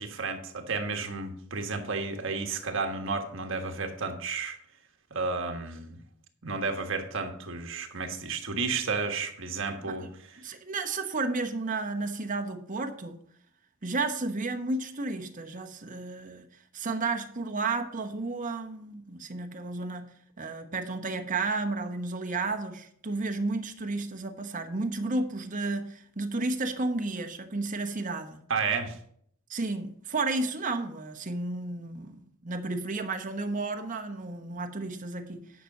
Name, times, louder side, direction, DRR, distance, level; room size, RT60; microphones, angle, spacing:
voice 1, 0.0-4.6 5.1-6.0 6.4-10.4 28.5-29.0, right 4 dB, 65° right, 5 dB, 1.5 m, -32 dB
voice 2, 10.4-13.2 13.8-16.5 16.7-20.1 20.4-28.4 29.5-35.4, right 3 dB, 40° right, 6 dB, 1.1 m, -32 dB
10.0 x 5.9 x 6.6 m, 0.65 s
head